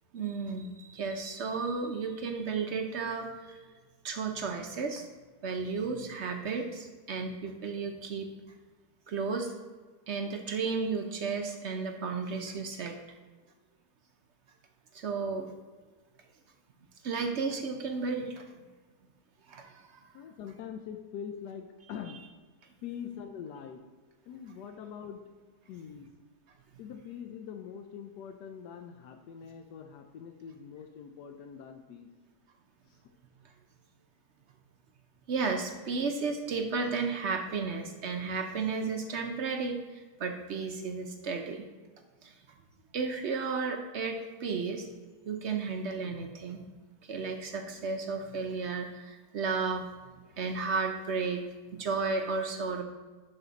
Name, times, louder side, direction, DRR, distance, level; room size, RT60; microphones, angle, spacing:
voice 1, 0.1-3.8 4.0-5.1 5.4-8.3 9.1-9.5 10.1-13.0 14.9-15.5 17.0-18.4 19.5-20.1 35.3-41.6 42.2-42.3 42.9-44.9 45.3-46.6 47.1-49.9 50.4-51.4 51.8-52.8, right 4 dB, 60° right, 4 dB, 0.8 m, -33 dB
voice 2, 20.1-22.2 22.8-23.8 24.3-26.1 26.8-32.1 32.9-33.0, left 8 dB, 90° left, 6 dB, 1.2 m, -43 dB
10.5 x 4.2 x 4.0 m, 1.3 s
omnidirectional pair, 1.7 m